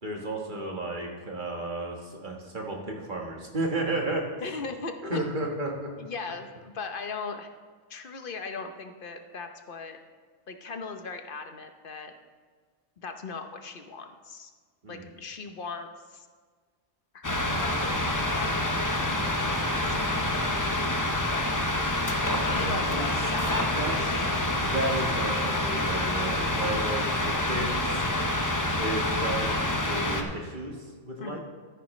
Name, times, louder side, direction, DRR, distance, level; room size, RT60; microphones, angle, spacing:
voice 1, 0.0-4.2 5.0-5.9 14.8-15.1 22.6-23.0 23.4-28.0 28.8-31.4, right 2 dB, 40° right, 0 dB, 1.5 m, -33 dB
voice 2, 4.4-5.2 6.0-7.5 7.9-10.0 10.5-12.1 13.0-14.5 14.9-16.3 17.1-18.6 19.2-20.2 21.3-21.6 22.4-24.5 31.2-31.4, left 4 dB, 50° left, 6 dB, 0.9 m, -39 dB
sound 1, 17.2-30.2, left 1 dB, 20° left, 0.7 m, -27 dB
13.0 x 10.0 x 3.1 m, 1.5 s
omnidirectional pair, 1.3 m